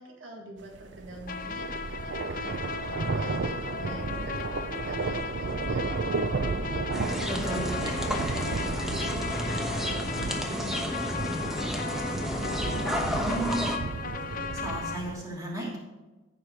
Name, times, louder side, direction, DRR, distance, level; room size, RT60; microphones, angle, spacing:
voice 1, 0.0-5.9 6.3-7.3 7.7-11.2, right 1 dB, 85° right, 1 dB, 1.6 m, -46 dB
sound 1, 0.7-15.2, right 3 dB, 65° right, 0.5 m, -34 dB
sound 2, 1.3-15.0, left 5 dB, 45° left, 0.7 m, -37 dB
sound 3, 6.9-13.8, equal, ahead, 1.0 m, -32 dB
voice 2, 7.3-7.7 13.2-13.7 14.5-15.8, right 1 dB, 20° right, -4 dB, 2.9 m, -33 dB
14.5 x 4.9 x 4.6 m, 1.1 s
head